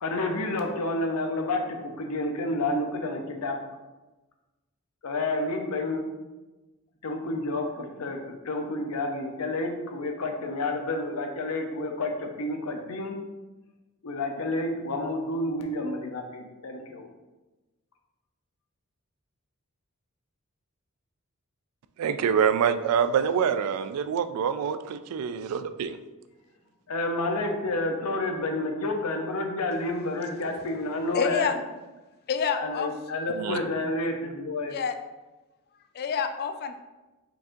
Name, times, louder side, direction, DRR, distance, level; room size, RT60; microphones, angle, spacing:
voice 1, 0.0-3.6 5.0-6.1 7.0-13.1 14.0-17.0 26.9-31.5 32.5-34.7, left 2 dB, 85° left, 4 dB, 0.6 m, -30 dB
voice 2, 22.0-26.0 33.3-33.6, right 7 dB, 85° right, 14 dB, 0.3 m, -26 dB
voice 3, 31.1-31.6 32.3-32.9 34.7-35.0 35.9-36.8, left 6 dB, 45° left, 9 dB, 0.3 m, -28 dB
4.7 x 2.6 x 3.7 m, 1.1 s
head